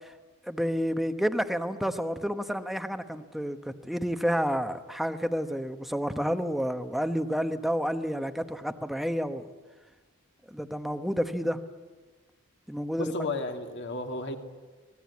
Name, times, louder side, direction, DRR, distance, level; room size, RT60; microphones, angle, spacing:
voice 1, 0.5-9.4 10.5-11.6 12.7-13.1, equal, ahead, 8 dB, 1.0 m, -30 dB
voice 2, 13.0-14.4, left 2 dB, 55° left, 4 dB, 2.4 m, -33 dB
25.0 x 19.0 x 8.5 m, 1.3 s
head